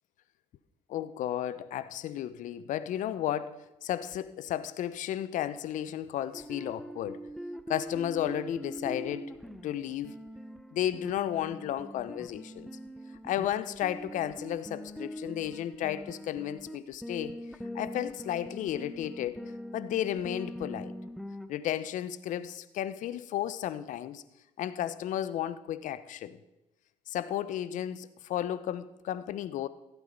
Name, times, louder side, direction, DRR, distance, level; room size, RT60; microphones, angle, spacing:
voice 1, 0.9-7.2 7.7-9.3 9.6-10.2 10.7-12.7 13.2-17.4 17.7-19.4 19.7-20.9 21.5-24.2 24.6-26.4 27.1-29.7, left 11 dB, 65° left, 15 dB, 0.8 m, -33 dB
sound 1, 6.3-21.5, equal, ahead, 1.0 m, -42 dB
15.0 x 8.3 x 5.3 m, 0.95 s
hypercardioid pair, 60°, 14 cm